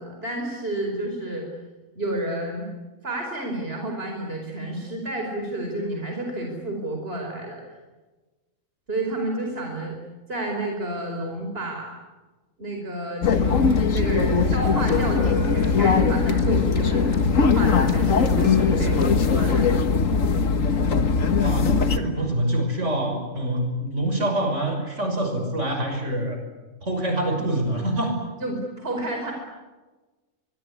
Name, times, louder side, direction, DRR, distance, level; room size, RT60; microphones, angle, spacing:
voice 1, 0.0-1.5 1.9-2.7 3.0-7.6 8.9-10.0 10.3-11.9 12.6-19.8 28.4-29.3, right 1 dB, 50° right, 2 dB, 5.1 m, -30 dB
sound 1, 13.2-22.0, left 5 dB, 85° left, 1.9 m, -20 dB
sound 2, 14.1-19.4, left 1 dB, 65° left, 6.1 m, -34 dB
voice 2, 21.4-26.4 26.8-28.2, right 1 dB, 65° right, 5 dB, 6.5 m, -25 dB
24.5 x 24.5 x 9.8 m, 1.2 s
omnidirectional pair, 1.3 m